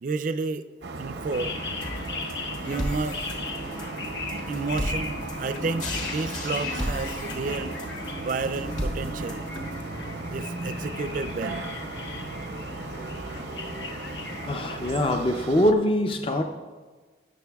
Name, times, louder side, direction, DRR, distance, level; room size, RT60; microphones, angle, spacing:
voice 1, 0.0-0.6 1.0-1.5 2.6-3.2 4.5-7.7 8.2-9.5 10.3-11.6, right 3 dB, 45° right, 11 dB, 0.4 m, -31 dB
sound 1, 0.8-15.7, right 2 dB, 85° right, 0.7 m, -36 dB
sound 2, 1.3-14.9, left 3 dB, 80° left, 0.8 m, -38 dB
sound 3, 1.8-9.8, equal, 45° left, 1.3 m, -35 dB
voice 2, 14.5-16.4, left 1 dB, 30° left, 4 dB, 0.5 m, -23 dB
19.0 x 6.6 x 2.3 m, 1.4 s
head